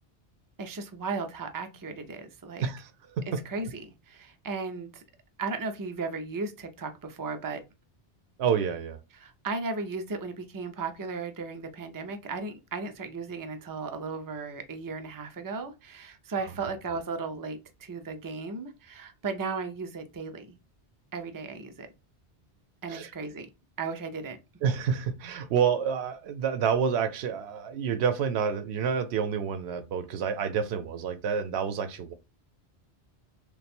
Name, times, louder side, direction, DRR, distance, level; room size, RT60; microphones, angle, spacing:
voice 1, 0.6-2.6 3.5-5.0 5.4-7.6 9.2-20.6 21.1-21.9 22.8-23.5 23.8-24.4, right 4 dB, 30° right, 0.4 m, -35 dB
voice 2, 2.6-3.4 8.4-9.0 22.9-23.1 24.6-32.1, right 7 dB, 75° right, 0.9 m, -28 dB
3.3 x 2.3 x 4.2 m
omnidirectional pair, 1.1 m